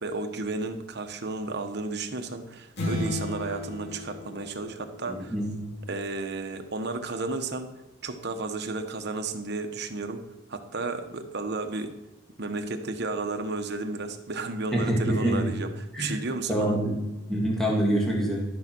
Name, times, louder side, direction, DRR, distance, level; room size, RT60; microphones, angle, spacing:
voice 1, 0.0-5.3 5.9-7.7 8.0-10.2 10.5-11.9 12.4-15.7 16.0-16.8, right 3 dB, 55° right, 6 dB, 1.1 m, -33 dB
sound 1, 2.8-5.4, left 1 dB, 55° left, 2.6 m, -34 dB
voice 2, 5.1-5.6 14.7-15.5 15.9-16.2 16.5-17.0 17.3-18.4, right 1 dB, ahead, -3 dB, 1.9 m, -26 dB
12.5 x 5.4 x 6.1 m, 1.1 s
head